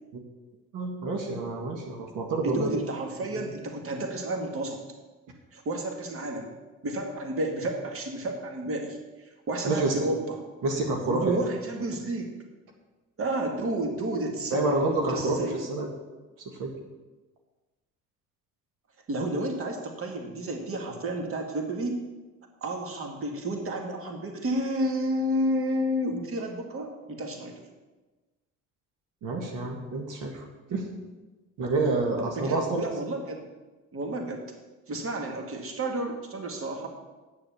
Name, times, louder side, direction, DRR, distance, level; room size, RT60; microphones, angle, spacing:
voice 1, 0.7-2.7 3.3-3.4 9.6-9.9 10.6-11.3 14.5-15.9 16.6-16.7 29.2-30.8 31.6-32.8, right 2 dB, 75° right, 1 dB, 1.8 m, -28 dB
voice 2, 2.4-4.8 5.5-6.5 6.8-9.0 9.5-10.4 11.1-12.3 13.2-15.6 19.1-22.0 22.6-27.5 32.2-33.4 33.9-34.4 34.9-36.9, right 1 dB, 45° right, 3 dB, 2.0 m, -31 dB
9.6 x 6.8 x 7.2 m, 1.2 s
cardioid pair, 100°, 32 cm